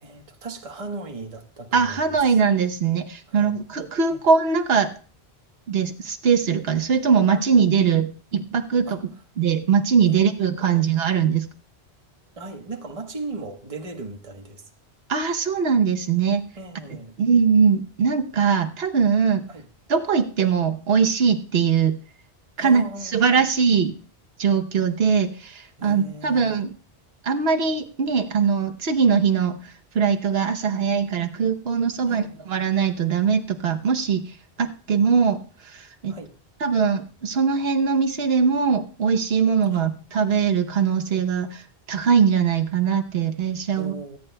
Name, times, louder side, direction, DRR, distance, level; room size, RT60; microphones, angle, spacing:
voice 1, 0.0-2.2 3.3-3.6 4.1-4.2 8.9-9.0 10.1-10.3 10.6-10.9 12.4-14.7 16.6-17.1 19.5-19.7 22.6-23.5 25.8-26.6 32.1-32.5 36.1-36.3 39.7-40.0 43.7-44.2, right 2 dB, 30° right, 3 dB, 1.3 m, -37 dB
voice 2, 1.7-4.9 5.7-8.9 9.4-11.5 15.1-16.4 17.2-19.4 19.9-22.0 22.6-22.8 23.1-23.9 24.4-26.7 27.2-29.6 29.9-34.2 34.6-35.4 35.7-36.1 36.6-41.6 41.9-43.9, right 6 dB, 65° right, 6 dB, 1.1 m, -21 dB
23.0 x 9.5 x 2.2 m, 0.37 s
omnidirectional pair, 1.1 m